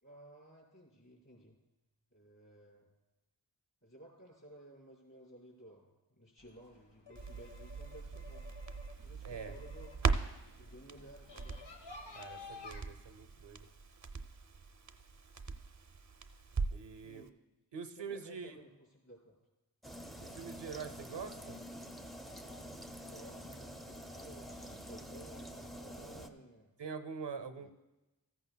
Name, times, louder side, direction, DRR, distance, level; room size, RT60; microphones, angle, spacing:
voice 1, 0.0-1.6 2.1-2.9 3.8-8.5 9.0-9.9 10.6-11.6 16.8-17.3 18.0-19.4 23.1-26.7 27.5-27.7, right 1 dB, 40° left, -4 dB, 4.6 m, -56 dB
sound 1, 6.4-12.8, left 4 dB, 80° left, 1.4 m, -53 dB
Crackle, 7.2-17.0 17.3-17.4, right 4 dB, 45° right, 0.6 m, -40 dB
voice 2, 9.2-9.5 12.1-13.7 16.7-17.3 17.7-18.6 20.2-21.6 26.8-27.7, right 6 dB, 90° right, 8 dB, 0.7 m, -44 dB
sound 2, 19.8-26.3, equal, ahead, 0.6 m, -47 dB
14.5 x 14.0 x 2.2 m, 1.0 s
wide cardioid pair, 45°, 42 cm